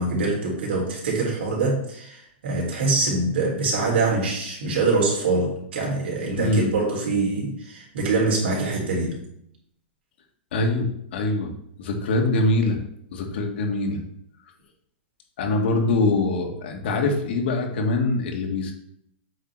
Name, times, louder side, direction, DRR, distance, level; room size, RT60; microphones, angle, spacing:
voice 1, 0.0-9.2, right 3 dB, 75° right, -2 dB, 3.1 m, -24 dB
voice 2, 6.4-6.7 10.5-11.5 11.8-12.8 13.1-14.0 15.4-18.7, left 2 dB, 70° left, 2 dB, 1.7 m, -23 dB
7.9 x 3.7 x 4.7 m, 0.74 s
hypercardioid pair, 145°, 6 cm